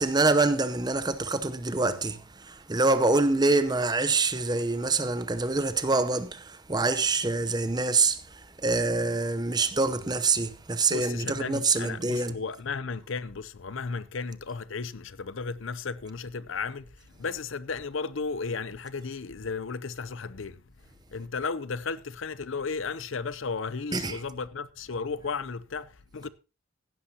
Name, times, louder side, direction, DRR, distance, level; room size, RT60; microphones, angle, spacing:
voice 1, 0.0-12.3 23.9-24.2, right 3 dB, 20° right, 0.7 m, -26 dB
voice 2, 10.9-20.6 21.1-26.3, left 4 dB, 65° left, 0.6 m, -34 dB
16.0 x 11.0 x 2.8 m
head